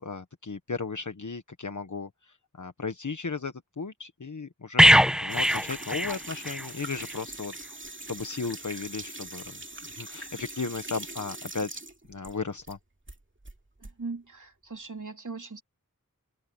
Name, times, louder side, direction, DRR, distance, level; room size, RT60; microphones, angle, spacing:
voice 1, 0.0-7.5 8.1-9.6 9.9-11.8 12.1-12.8, left 4 dB, 60° left, 1.3 m, -35 dB
sound 1, 4.8-6.7 7.0-7.2, equal, ahead, 1.0 m, -21 dB
sound 2, 5.3-12.8 13.1-13.9, right 2 dB, 35° right, 2.4 m, -42 dB
voice 2, 13.8-15.6, right 4 dB, 60° right, 3.0 m, -39 dB
open air
wide cardioid pair, 50°, 35 cm